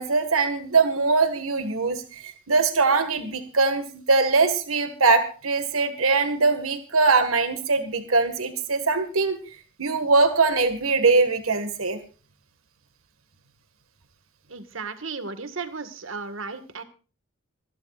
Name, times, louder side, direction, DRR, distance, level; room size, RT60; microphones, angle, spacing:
voice 1, 0.0-9.4 9.8-12.0, right 4 dB, 85° right, 9 dB, 1.8 m, -22 dB
voice 2, 14.5-16.8, right 4 dB, 70° right, 10 dB, 1.7 m, -35 dB
27.0 x 12.0 x 2.5 m, 0.36 s
head